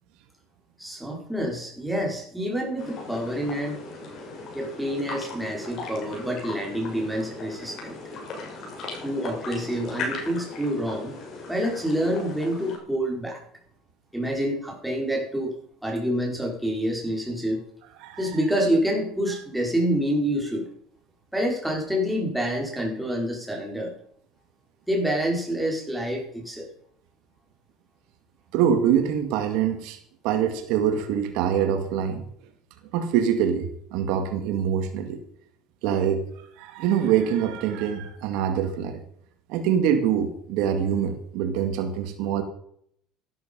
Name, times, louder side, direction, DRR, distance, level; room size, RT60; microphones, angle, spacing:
voice 1, 0.8-3.8 4.5-7.9 9.0-11.1 11.5-13.4 14.1-15.5 15.8-17.6 18.2-20.7 21.3-23.9 24.9-26.7, equal, ahead, 0 dB, 4.9 m, -27 dB
sound 1, 2.8-12.8, left 3 dB, 50° left, 6.3 m, -38 dB
voice 2, 18.0-18.3 28.5-30.0 30.2-32.2 32.9-35.2 35.8-36.2 36.6-39.0 39.5-42.4, right 8 dB, 75° right, 7 dB, 2.2 m, -24 dB
13.5 x 12.5 x 5.4 m, 0.66 s
cardioid pair, 120°, 0 cm